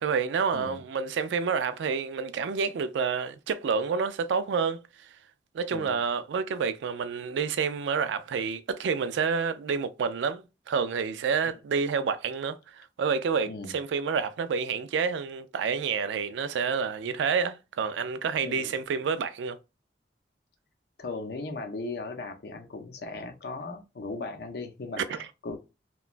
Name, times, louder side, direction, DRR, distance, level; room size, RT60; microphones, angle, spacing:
voice 1, 0.0-4.8 5.5-19.6 25.0-25.2, right 5 dB, 85° right, 0.3 m, -29 dB
voice 2, 5.7-6.0 11.4-11.6 13.5-13.8 18.4-18.7 21.0-25.6, left 3 dB, 60° left, 0.5 m, -38 dB
2.9 x 2.2 x 2.4 m
head